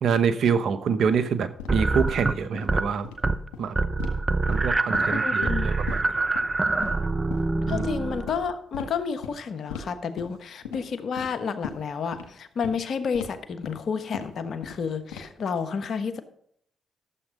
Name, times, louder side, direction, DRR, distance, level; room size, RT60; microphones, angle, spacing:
voice 1, 0.0-3.1 3.6-3.7 4.5-6.0 7.6-7.9, right 6 dB, 70° right, 11 dB, 1.0 m, -26 dB
sound 1, 1.1-1.2 1.6-1.7 2.1-2.2 2.5-2.7 2.9-3.1 3.5-3.6 4.0-4.1 4.5-5.1 5.4-5.5 5.9-6.0 6.3-6.4 6.8-7.0 7.3-7.4 7.8-7.9 8.3-8.4 8.7-8.9 9.2-9.3 9.7-9.9 10.2-10.3 10.6-10.8 11.2-11.3 11.6-11.8 12.1-12.2 12.6-12.7 13.1-13.3 13.6-13.7 14.1-14.2 14.6-14.8 15.1-15.4, left 7 dB, 90° left, 1.7 m, -37 dB
sound 2, 1.7-2.9 3.2-3.5 3.8-8.5, right 3 dB, 30° right, 0.7 m, -25 dB
voice 2, 5.1-5.7 7.7-16.2, left 6 dB, 65° left, 10 dB, 1.1 m, -30 dB
12.5 x 7.3 x 5.3 m, 0.68 s
supercardioid pair, 50°, 0 cm